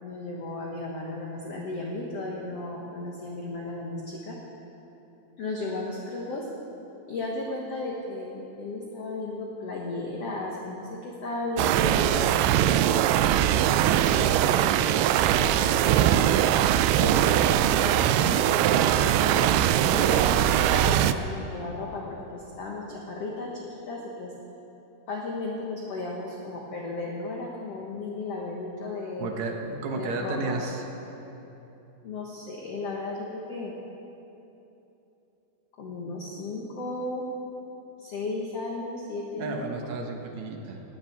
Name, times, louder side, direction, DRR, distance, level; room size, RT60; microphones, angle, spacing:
voice 1, 0.0-4.4 5.4-6.5 7.1-13.2 14.0-15.0 15.3-16.3 16.9-24.3 25.1-29.3 29.9-30.6 32.0-33.7 35.8-37.3 38.0-39.9, left 2 dB, 75° left, -2 dB, 1.4 m, -35 dB
sound 1, 11.6-21.1, right 11 dB, 85° right, 2.3 m, -21 dB
voice 2, 29.2-30.8 39.4-40.8, right 3 dB, 65° right, 2 dB, 1.8 m, -32 dB
18.0 x 7.3 x 9.3 m, 3.0 s
omnidirectional pair, 4.9 m